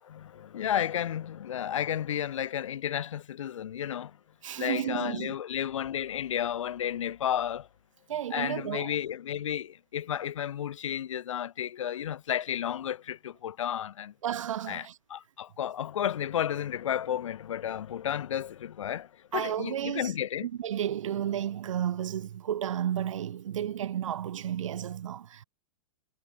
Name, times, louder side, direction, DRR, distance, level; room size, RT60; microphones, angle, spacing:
voice 1, 0.0-4.2 4.6-7.7 8.3-14.1 14.7-20.5, left 10 dB, 75° left, 2.3 m, -32 dB
voice 2, 4.4-5.3 8.1-8.9 14.2-14.9 19.3-20.1 20.4-25.4, right 10 dB, 85° right, 0.8 m, -32 dB
hypercardioid pair, 155°, 16 cm